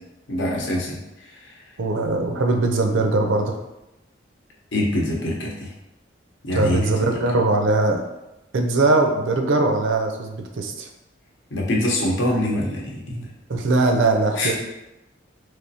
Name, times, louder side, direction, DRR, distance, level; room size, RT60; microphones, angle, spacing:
voice 1, 0.3-1.0 4.7-5.7 6.4-6.8 11.5-13.3 14.4-14.5, left 1 dB, 75° left, -2 dB, 0.8 m, -24 dB
voice 2, 1.8-3.6 6.5-8.0 8.5-10.9 13.5-14.5, right 2 dB, 80° right, 4 dB, 0.5 m, -20 dB
3.4 x 3.1 x 2.7 m, 0.94 s
head